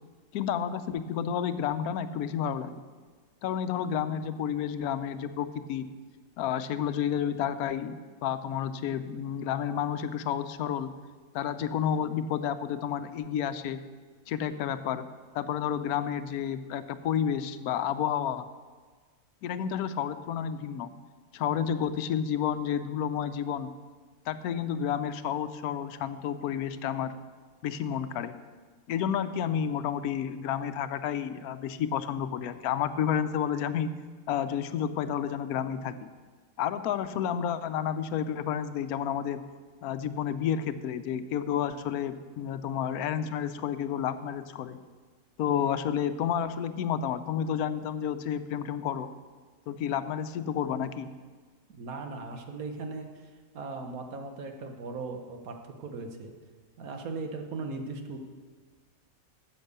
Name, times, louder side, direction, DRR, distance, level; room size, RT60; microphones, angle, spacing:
voice 1, 0.3-2.9 3.4-5.9 6.4-10.9 11.3-13.8 14.3-15.1 15.3-18.5 19.4-20.9 21.3-23.7 24.3-27.1 27.6-28.4 28.9-33.9 34.3-36.1 36.6-39.4 39.8-44.8 45.4-49.1 49.7-51.1, left 9 dB, 85° left, 12 dB, 1.1 m, -30 dB
voice 2, 51.7-56.3 56.8-58.2, right 3 dB, 75° right, 5 dB, 1.5 m, -38 dB
9.9 x 7.3 x 6.7 m, 1.5 s
omnidirectional pair, 1.5 m